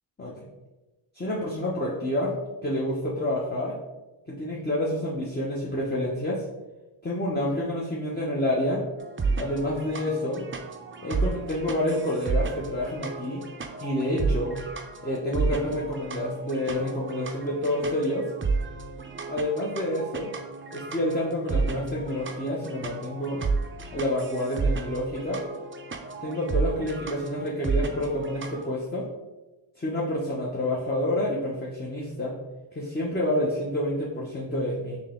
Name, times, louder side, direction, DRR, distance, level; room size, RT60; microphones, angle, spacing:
voice 1, 0.2-0.5 1.1-2.3 2.6-3.8 4.3-6.4 7.0-8.8 9.4-10.4 11.0-13.5 13.8-14.6 15.0-18.3 19.3-20.3 20.7-23.4 23.9-25.4 26.2-29.1 29.8-32.4 32.7-35.0, left 1 dB, 20° left, -4 dB, 0.9 m, -28 dB
sound 1, 9.0-28.7, right 4 dB, 25° right, 0.5 m, -32 dB
3.9 x 2.9 x 3.7 m, 1.1 s
cardioid pair, 55°, 49 cm